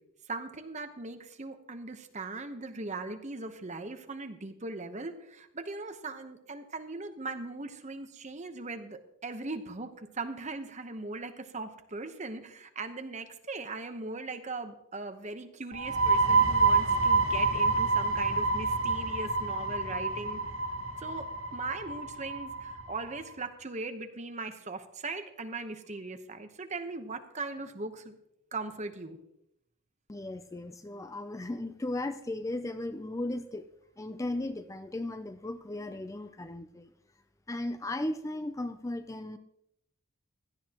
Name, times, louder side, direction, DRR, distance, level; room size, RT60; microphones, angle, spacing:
voice 1, 0.3-20.4 21.0-21.3 21.5-28.2 28.5-29.2, right 3 dB, 35° right, 7 dB, 1.0 m, -39 dB
sound 1, 15.7-23.2, right 3 dB, 90° right, 1.6 m, -28 dB
voice 2, 30.1-33.7 34.0-36.9 37.5-39.4, left 1 dB, 15° left, 10 dB, 0.4 m, -36 dB
16.5 x 12.0 x 3.0 m, 0.80 s
head